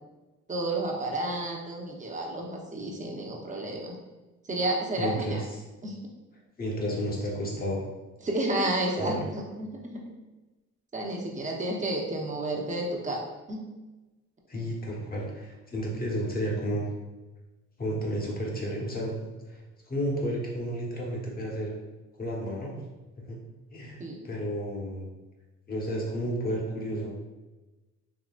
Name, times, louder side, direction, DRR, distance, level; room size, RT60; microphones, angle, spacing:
voice 1, 0.5-3.9 4.5-5.4 5.8-6.0 8.2-10.0 10.9-13.2 13.5-13.6 24.0-24.2, right 1 dB, 25° right, -1 dB, 0.8 m, -31 dB
voice 2, 5.0-5.5 6.6-7.9 9.0-9.2 14.5-16.9 17.8-21.7 22.2-22.7 23.2-23.4 23.7-25.1 25.7-27.1, equal, 30° left, -2 dB, 1.1 m, -32 dB
3.8 x 3.0 x 2.4 m, 1.1 s
cardioid pair, 90°, 30 cm